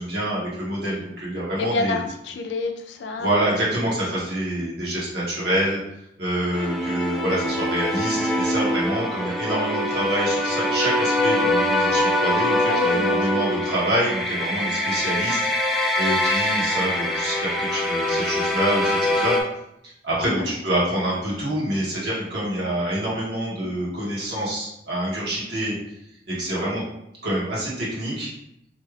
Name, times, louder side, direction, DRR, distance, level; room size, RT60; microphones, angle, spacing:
voice 1, 0.0-2.0 3.2-5.8 6.2-15.4 16.0-19.3 20.0-25.8 26.3-26.8 27.2-28.3, right 1 dB, 75° right, -7 dB, 1.4 m, -26 dB
voice 2, 1.6-3.6 12.7-13.6 20.2-20.6, left 3 dB, 90° left, 5 dB, 0.4 m, -29 dB
sound 1, 6.5-19.4, left 1 dB, ahead, 0.3 m, -23 dB
3.2 x 2.3 x 3.2 m, 0.79 s
head